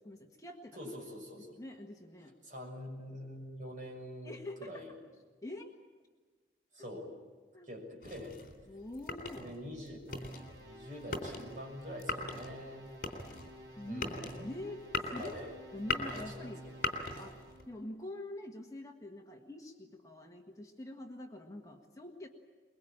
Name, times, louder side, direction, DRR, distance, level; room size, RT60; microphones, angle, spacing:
voice 1, 0.0-0.8 1.6-2.4 4.2-4.9 5.4-5.7 6.8-6.9 7.5-7.7 8.7-9.5 13.8-14.0 14.4-14.8 15.0-15.3 15.7-16.7 17.2-17.4 17.7-22.3, left 1 dB, 20° left, 2 dB, 1.6 m, -45 dB
voice 2, 0.8-1.6 2.4-4.9 6.7-7.1 7.6-8.4 9.4-10.0 10.6-12.9 13.9-14.2 15.2-15.5 16.0-16.8, equal, 45° right, 0 dB, 6.4 m, -45 dB
sound 1, 8.0-17.7, left 3 dB, 50° left, 3.5 m, -40 dB
sound 2, 10.1-17.6, right 1 dB, 85° right, 5.5 m, -51 dB
23.5 x 22.0 x 8.9 m, 1.4 s
head